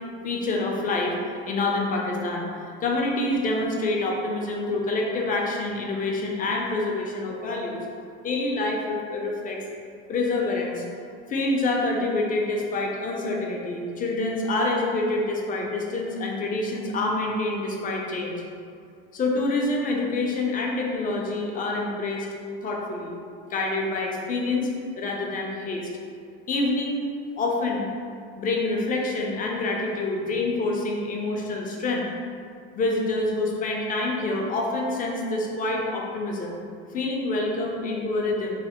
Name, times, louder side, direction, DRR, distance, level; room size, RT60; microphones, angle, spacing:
voice 1, 0.2-1.2 1.5-2.5 2.8-7.8 8.2-9.6 10.1-10.8 11.3-18.4 19.1-22.3 22.6-23.1 23.5-24.7 24.9-25.9 26.5-27.0 27.4-27.8 28.4-32.0 32.7-36.6 36.9-38.5, left 2 dB, 30° left, -1 dB, 0.4 m, -26 dB
3.2 x 2.0 x 2.8 m, 2.3 s
supercardioid pair, 115°, 30 cm